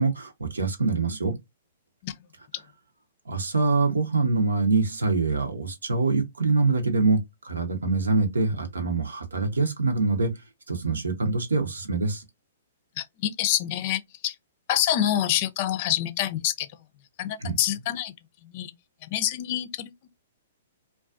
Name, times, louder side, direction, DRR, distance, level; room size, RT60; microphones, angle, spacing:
voice 1, 0.0-1.3 3.3-10.3 10.7-12.2 17.4-17.6, right 3 dB, 85° right, 0.7 m, -24 dB
voice 2, 13.0-14.4 14.7-16.7 17.2-18.1 18.4-18.7 19.1-20.1, left 12 dB, 45° left, 0.4 m, -27 dB
2.4 x 2.3 x 2.3 m
hypercardioid pair, 120°, 0 cm